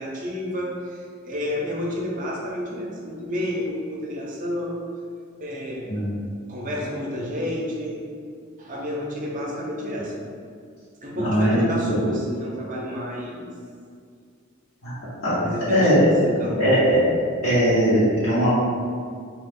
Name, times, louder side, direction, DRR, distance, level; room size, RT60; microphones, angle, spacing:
voice 1, 0.0-4.8 5.4-5.9 6.5-8.1 8.6-10.1 11.0-13.5 15.4-16.8, left 1 dB, 40° right, -3 dB, 0.6 m, -30 dB
voice 2, 11.2-12.0 14.8-14.9 15.2-15.3 15.7-16.1 16.6-17.0 17.4-18.5, equal, 75° left, -13 dB, 0.9 m, -19 dB
2.9 x 2.4 x 3.5 m, 2.2 s
head